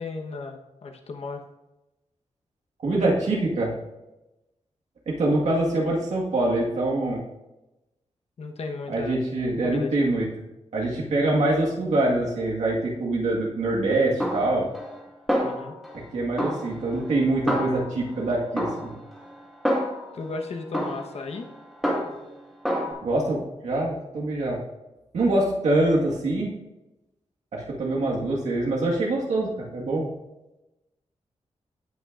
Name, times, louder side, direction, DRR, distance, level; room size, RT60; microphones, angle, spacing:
voice 1, 0.0-1.4 8.4-9.2 9.6-10.1 15.4-15.7 20.1-21.5, left 4 dB, 65° left, 3 dB, 1.2 m, -35 dB
voice 2, 2.8-3.7 5.1-7.2 8.9-10.3 10.7-14.7 16.1-18.9 23.0-24.6 25.1-26.5 27.5-30.1, right 2 dB, 85° right, -3 dB, 1.7 m, -24 dB
Snare drum, 14.2-15.0 15.3-16.0 16.4-18.2 18.6-20.2 20.7-22.3 22.6-22.9, equal, ahead, 1.8 m, -28 dB
16.5 x 6.0 x 2.5 m, 0.99 s
wide cardioid pair, 160°, 12 cm